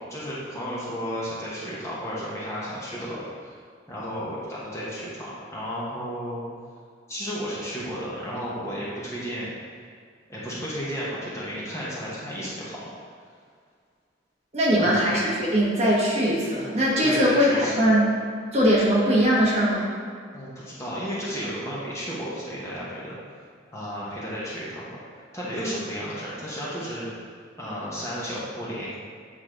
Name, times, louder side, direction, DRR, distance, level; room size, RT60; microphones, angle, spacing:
voice 1, 0.1-3.5 3.9-6.4 7.1-9.5 10.3-12.8 14.8-15.1 17.0-17.9 20.3-23.2 23.7-25.0 25.3-27.1 27.6-29.0, equal, 15° left, -7 dB, 1.3 m, -33 dB
voice 2, 14.5-18.1 18.5-19.9, equal, 35° right, -6 dB, 1.3 m, -21 dB
8.1 x 4.2 x 3.8 m, 2.1 s
head